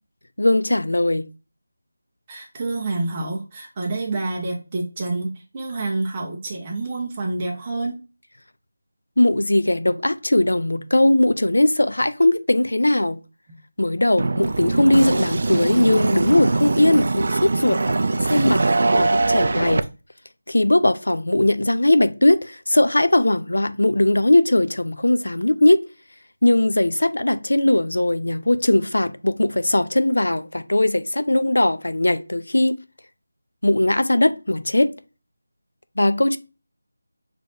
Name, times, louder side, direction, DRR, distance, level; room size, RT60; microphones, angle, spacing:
voice 1, 0.4-1.3 9.2-13.2 13.8-18.6 18.9-19.9 20.5-25.8 26.4-32.8 33.6-34.9 36.0-36.4, left 1 dB, 90° left, 0.5 m, -19 dB
voice 2, 2.3-8.0 13.5-13.6, right 2 dB, 20° right, 0.9 m, -28 dB
sound 1, 14.2-19.8, right 3 dB, 45° right, 0.3 m, -22 dB
6.1 x 3.3 x 2.6 m
figure-of-eight pair, 170°, 0 cm